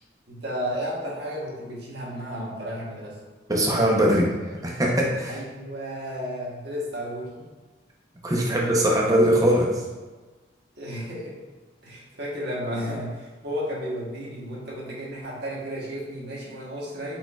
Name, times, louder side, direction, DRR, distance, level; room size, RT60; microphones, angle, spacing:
voice 1, 0.3-3.2 5.3-7.5 10.8-11.4 11.8-17.2, equal, 55° right, -5 dB, 1.1 m, -33 dB
voice 2, 3.5-4.3 4.6-5.4 8.2-9.8, equal, 20° right, -2 dB, 0.6 m, -21 dB
4.3 x 4.3 x 2.3 m, 1.3 s
head